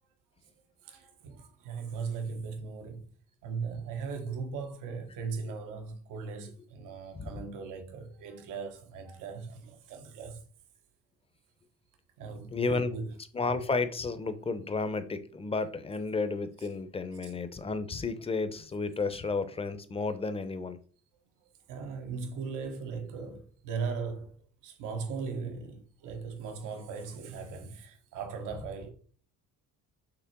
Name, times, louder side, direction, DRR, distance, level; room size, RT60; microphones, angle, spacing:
voice 1, 0.8-3.1 3.4-10.4 12.2-13.1 17.2-17.3 21.4-24.4 24.6-28.9, right 5 dB, 85° right, 1.2 m, -38 dB
voice 2, 12.5-12.9 13.3-20.8, left 3 dB, 20° left, 0.6 m, -32 dB
6.0 x 3.4 x 5.8 m
cardioid pair, 130°, 31 cm